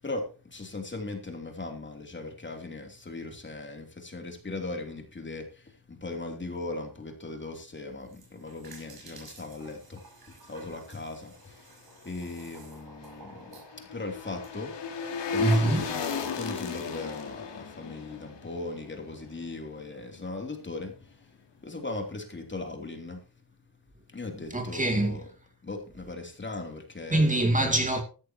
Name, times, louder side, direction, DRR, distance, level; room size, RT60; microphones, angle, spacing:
voice 1, 0.0-15.0 15.3-23.3 24.1-25.3 25.6-27.4, left 2 dB, 25° left, 3.0 m, -39 dB
sound 1, 7.9-14.5, right 3 dB, 60° right, 6.2 m, -52 dB
sound 2, 12.6-19.8 20.1-20.2, left 5 dB, 85° left, 3.0 m, -35 dB
voice 2, 15.4-15.8 24.5-25.2 27.1-28.0, right 1 dB, 20° right, 2.6 m, -24 dB
14.5 x 13.0 x 2.9 m
wide cardioid pair, 155°, 42 cm